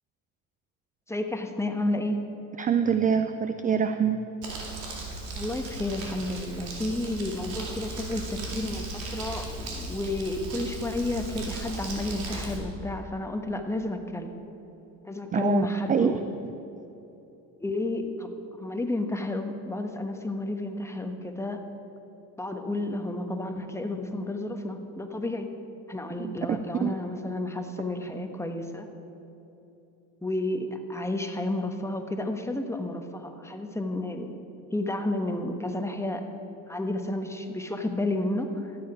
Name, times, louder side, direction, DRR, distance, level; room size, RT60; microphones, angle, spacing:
voice 1, 1.1-2.2 5.4-14.3 15.0-16.2 17.6-21.6 22.4-25.5 25.9-28.9 30.2-34.3 34.7-36.3 36.7-38.8, left 2 dB, 5° left, 5 dB, 1.1 m, -31 dB
voice 2, 2.6-4.3 15.3-16.2 26.2-26.9, right 7 dB, 20° right, 10 dB, 0.4 m, -25 dB
Crumpling crinkling, 4.4-12.6, right 2 dB, 85° right, 2.4 m, -36 dB
13.0 x 9.0 x 4.9 m, 3.0 s
supercardioid pair, 85°, 40 cm